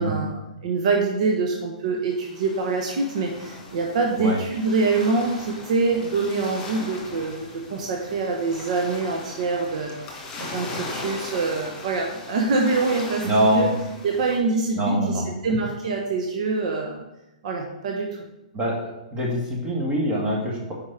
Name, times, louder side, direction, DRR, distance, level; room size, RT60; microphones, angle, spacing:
voice 1, 0.0-13.7 14.0-17.0 17.4-18.2, right 3 dB, 60° right, 1 dB, 0.9 m, -25 dB
sound 1, 2.1-14.4, left 3 dB, 20° left, 2.3 m, -39 dB
voice 2, 13.2-13.7 14.7-15.3 18.5-20.8, equal, 20° right, -3 dB, 2.0 m, -24 dB
5.3 x 4.7 x 5.7 m, 0.97 s
hypercardioid pair, 140°, 4 cm